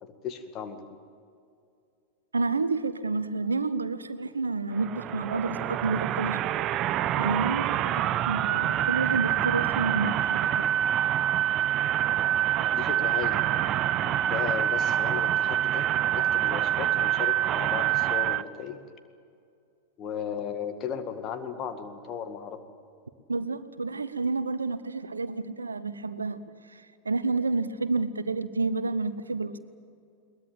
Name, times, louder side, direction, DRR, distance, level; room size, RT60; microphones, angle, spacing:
voice 1, 0.0-0.8 12.7-13.5 14.0-18.8 20.0-22.6, left 7 dB, 35° left, 8 dB, 2.1 m, -36 dB
voice 2, 2.3-6.5 7.2-10.7 23.3-26.4 26.7-29.6, right 3 dB, 75° right, 14 dB, 1.0 m, -30 dB
sound 1, 4.7-18.4, right 12 dB, 35° right, 0.6 m, -26 dB
22.0 x 20.0 x 8.7 m, 2.4 s
figure-of-eight pair, 90°, 0 cm